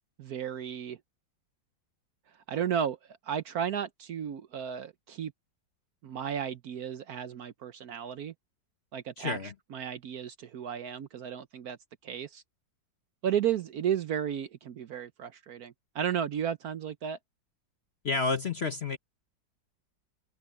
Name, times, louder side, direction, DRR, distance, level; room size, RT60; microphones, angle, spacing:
voice 1, 0.2-1.0 2.5-3.0 3.2-5.3 6.0-8.3 8.9-11.8 12.0-12.4 13.2-17.2, right 9 dB, 60° right, 1.1 m, -33 dB
voice 2, 9.2-9.5 18.0-19.0, left 4 dB, 45° left, 0.9 m, -30 dB
open air
omnidirectional pair, 2.0 m